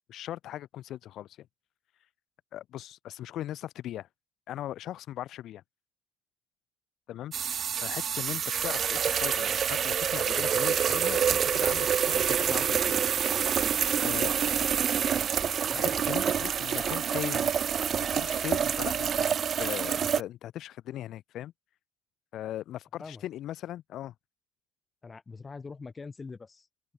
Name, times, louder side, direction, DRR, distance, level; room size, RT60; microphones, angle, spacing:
voice 1, 0.1-1.5 2.5-4.1 4.5-5.6 7.1-7.3 7.7-13.0 14.0-14.7 15.7-17.5 18.0-21.5 22.3-24.1, left 12 dB, 65° left, 4.1 m, -39 dB
sound 1, 7.3-20.2, right 8 dB, 50° right, 0.4 m, -27 dB
voice 2, 25.0-26.7, left 4 dB, 30° left, 3.4 m, -43 dB
open air
supercardioid pair, 80°, 0 cm